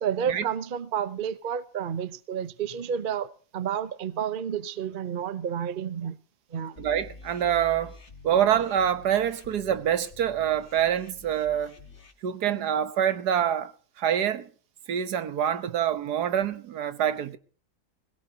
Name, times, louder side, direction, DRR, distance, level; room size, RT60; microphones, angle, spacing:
voice 1, 0.0-6.2 6.5-6.8, right 8 dB, 40° right, 0.8 m, -30 dB
sound 1, 6.8-12.1, left 4 dB, 45° left, 2.2 m, -48 dB
voice 2, 6.8-8.0 8.2-11.8 12.2-13.7 14.0-14.5 14.9-17.4, right 9 dB, 75° right, 1.6 m, -26 dB
20.5 x 17.5 x 2.8 m
omnidirectional pair, 1.7 m